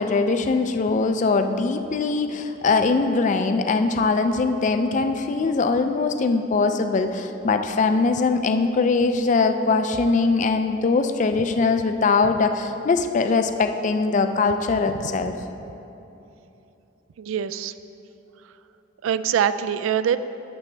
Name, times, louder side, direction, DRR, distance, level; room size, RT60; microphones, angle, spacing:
voice 1, 0.0-15.3, left 4 dB, 35° left, 8 dB, 0.3 m, -21 dB
voice 2, 17.2-17.7 19.0-20.2, right 8 dB, 80° right, 13 dB, 0.3 m, -23 dB
12.0 x 6.9 x 3.3 m, 2.9 s
head